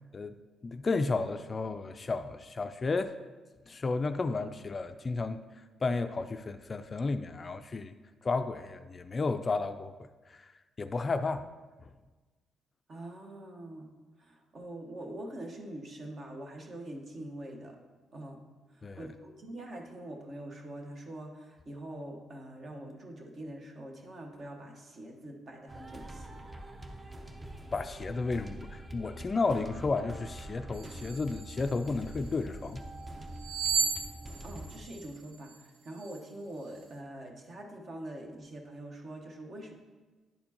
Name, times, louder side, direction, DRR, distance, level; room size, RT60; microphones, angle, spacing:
voice 1, 0.6-3.1 3.7-5.5 5.8-7.9 8.2-9.9 10.8-11.5 11.8-11.9 18.8-19.1 27.7-32.8, left 3 dB, 35° left, 10 dB, 0.3 m, -32 dB
voice 2, 12.9-13.9 14.3-17.8 18.1-18.4 19.0-26.4 34.4-35.5 35.8-39.7, right 1 dB, 50° right, 2 dB, 1.2 m, -44 dB
sound 1, 25.7-34.8, right 1 dB, 20° right, 0.6 m, -45 dB
sound 2, 30.7-32.3 33.4-35.5 36.0-36.2, right 5 dB, 65° right, 0.5 m, -34 dB
10.5 x 4.3 x 2.9 m, 1.3 s
cardioid pair, 90°, 0 cm